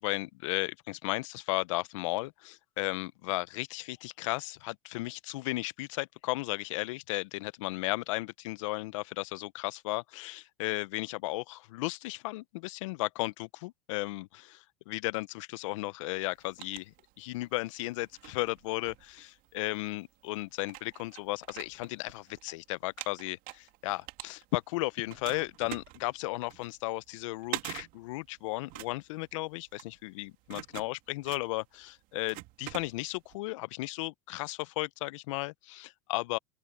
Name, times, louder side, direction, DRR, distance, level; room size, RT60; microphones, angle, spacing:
voice 1, 0.0-36.4, left 21 dB, 70° left, 0.7 m, -35 dB
sound 1, 16.2-17.5 18.0-19.7 20.3-20.4 20.6-22.5 22.8-24.7 25.1-33.3, right 20 dB, 55° right, 2.3 m, -45 dB
open air
hypercardioid pair, 95°, 16 cm